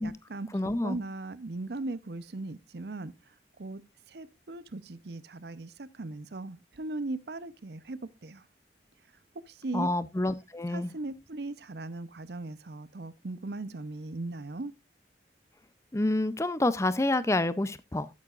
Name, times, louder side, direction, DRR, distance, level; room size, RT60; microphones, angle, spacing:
voice 1, 0.0-3.1 3.6-3.8 4.1-8.4 9.5-9.9 10.7-14.7, right 2 dB, 65° right, 0.7 m, -38 dB
voice 2, 0.5-1.0 9.7-10.9 15.9-18.1, left 2 dB, 15° left, 0.5 m, -28 dB
12.5 x 8.6 x 2.4 m
head